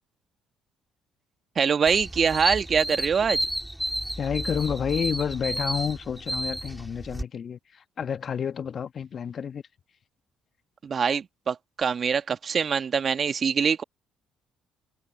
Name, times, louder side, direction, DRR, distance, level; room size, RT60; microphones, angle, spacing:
voice 1, 1.5-3.4 10.8-13.8, right 6 dB, 45° right, 1.6 m, -24 dB
sound 1, 1.9-7.2, right 1 dB, 5° right, 4.8 m, -31 dB
voice 2, 4.2-9.6, left 7 dB, 50° left, 1.5 m, -30 dB
hypercardioid pair, 55°, 0 cm